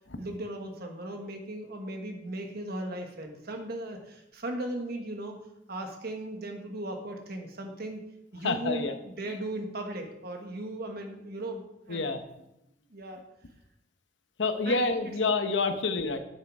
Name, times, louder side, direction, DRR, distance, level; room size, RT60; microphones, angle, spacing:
voice 1, 0.2-5.4 5.7-8.0 8.3-12.1 12.9-13.2 14.6-14.8, right 1 dB, 55° right, 4 dB, 1.4 m, -37 dB
voice 2, 8.4-9.0 11.9-12.2 14.4-16.2, left 3 dB, 70° left, 8 dB, 0.9 m, -27 dB
8.2 x 6.6 x 4.9 m, 0.86 s
head